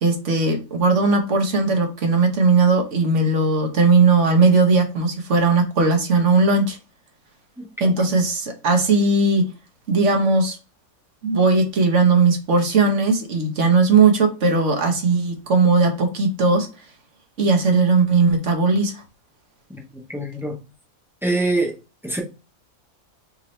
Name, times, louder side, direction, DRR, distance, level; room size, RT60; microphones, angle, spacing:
voice 1, 0.0-6.8 7.8-9.5 9.9-10.6 11.2-16.7 17.4-19.0, right 4 dB, 60° right, 1.5 m, -18 dB
voice 2, 7.6-8.0 19.7-19.8 20.1-20.5 21.2-21.8 22.0-22.2, right 2 dB, ahead, 0.9 m, -25 dB
5.2 x 2.8 x 3.2 m
omnidirectional pair, 1.5 m